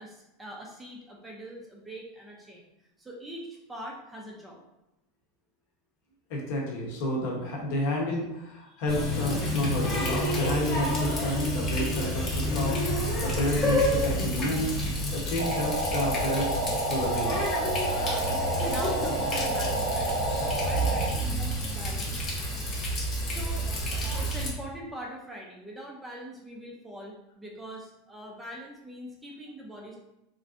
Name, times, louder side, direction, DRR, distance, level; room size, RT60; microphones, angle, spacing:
voice 1, 0.0-2.6 3.0-4.6 8.7-8.8 18.0-22.2 23.2-30.0, equal, 5° right, -2 dB, 0.4 m, -43 dB
voice 2, 6.3-14.8 15.1-16.6 16.9-17.5, left 1 dB, 55° left, -1 dB, 0.8 m, -30 dB
Water tap faucet, 8.9-24.5, equal, 25° left, 0.7 m, -29 dB
sound 1, 15.4-21.1, right 2 dB, 75° right, 0.5 m, -30 dB
3.2 x 2.5 x 2.4 m, 0.91 s
supercardioid pair, 165°, 0 cm